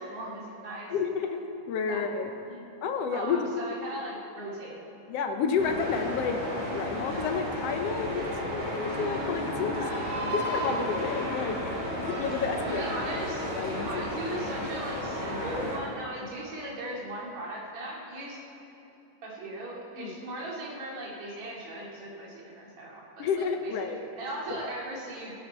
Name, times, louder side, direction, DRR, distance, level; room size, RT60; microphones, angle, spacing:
voice 1, 0.0-0.9 1.9-2.0 2.5-2.6 3.1-4.8 12.6-13.5 13.8-18.4 19.2-25.4, right 1 dB, 70° right, -4 dB, 3.7 m, -38 dB
voice 2, 0.9-1.4 1.7-2.3 2.8-3.5 5.1-9.9 10.3-11.6 12.0-12.8 13.6-13.9 20.0-20.2 23.2-24.0 24.5-24.6, left 5 dB, 70° left, 6 dB, 1.6 m, -30 dB
sound 1, 5.6-15.8, equal, 50° right, 3.6 m, -33 dB
16.5 x 11.0 x 4.6 m, 2.9 s
omnidirectional pair, 3.3 m